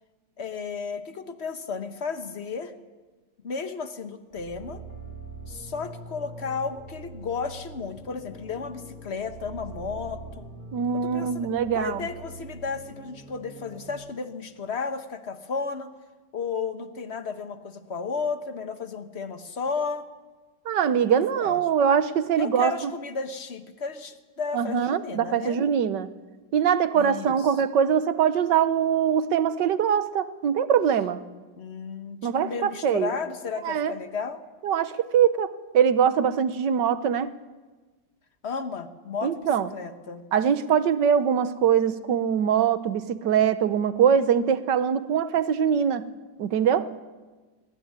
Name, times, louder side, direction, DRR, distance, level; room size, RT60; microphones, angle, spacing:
voice 1, 0.4-2.7 3.4-4.8 5.5-10.5 11.0-11.5 11.7-15.9 16.3-20.1 21.4-21.6 22.4-25.6 26.9-27.5 31.6-34.4 38.4-40.2, left 5 dB, 40° left, 9 dB, 1.5 m, -33 dB
sound 1, 4.3-13.9, right 2 dB, 25° right, 6.1 m, -43 dB
voice 2, 10.7-12.0 20.6-22.9 24.5-26.1 26.5-31.2 32.2-33.1 33.6-33.9 34.6-37.3 39.2-39.7 40.3-46.0 46.4-46.9, right 8 dB, 70° right, 13 dB, 1.6 m, -23 dB
22.0 x 20.0 x 9.8 m, 1.3 s
omnidirectional pair, 2.0 m